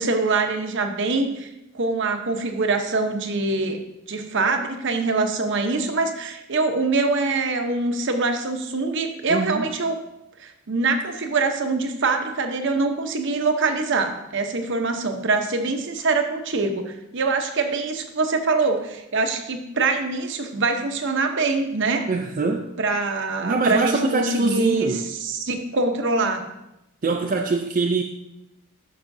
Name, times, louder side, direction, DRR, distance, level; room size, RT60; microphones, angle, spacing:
voice 1, 0.0-1.5 1.7-3.8 4.1-10.0 10.4-22.1 22.8-26.5, right 3 dB, 55° right, 6 dB, 0.8 m, -24 dB
voice 2, 9.3-9.7 22.1-22.7 23.4-25.0 27.0-28.0, right 3 dB, 40° right, 2 dB, 0.4 m, -23 dB
11.5 x 6.3 x 2.7 m, 0.90 s
head